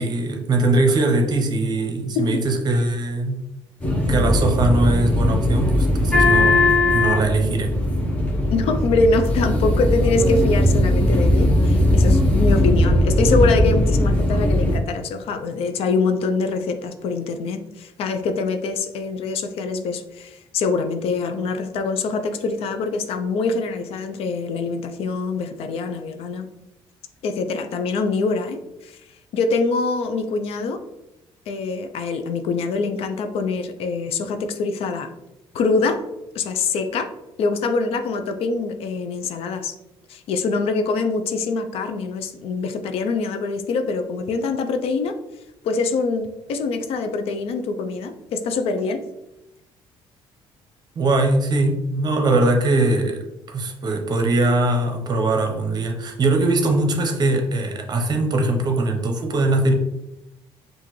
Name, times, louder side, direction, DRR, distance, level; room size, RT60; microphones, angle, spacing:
voice 1, 0.0-3.4 4.1-7.8 51.0-59.7, right 2 dB, 40° right, 3 dB, 0.8 m, -21 dB
sound 1, 3.8-14.8, left 1 dB, 15° left, 1.0 m, -18 dB
voice 2, 8.5-26.5 27.2-29.0 29.3-30.8 31.5-35.1 35.5-36.0 36.3-37.1 37.4-39.7 40.1-45.2 45.6-49.0, left 4 dB, 70° left, 8 dB, 0.5 m, -24 dB
5.7 x 2.6 x 3.1 m, 0.92 s
cardioid pair, 110°, 10 cm